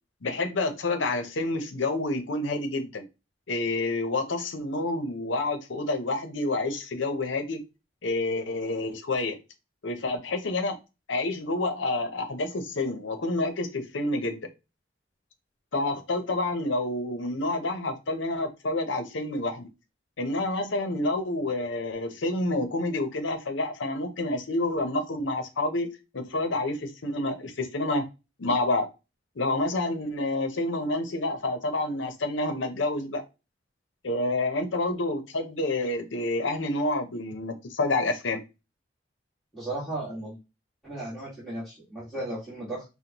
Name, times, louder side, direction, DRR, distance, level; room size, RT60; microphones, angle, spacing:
voice 1, 0.2-3.0 3.5-7.6 8.0-9.4 9.8-10.8 11.1-14.4 15.7-19.7 20.2-28.0 28.4-28.9 29.4-33.2 34.0-38.4, left 2 dB, 85° left, 0.8 m, -28 dB
voice 2, 39.5-40.4 40.8-42.8, right 1 dB, 5° left, 1.7 m, -35 dB
5.2 x 2.3 x 2.9 m
head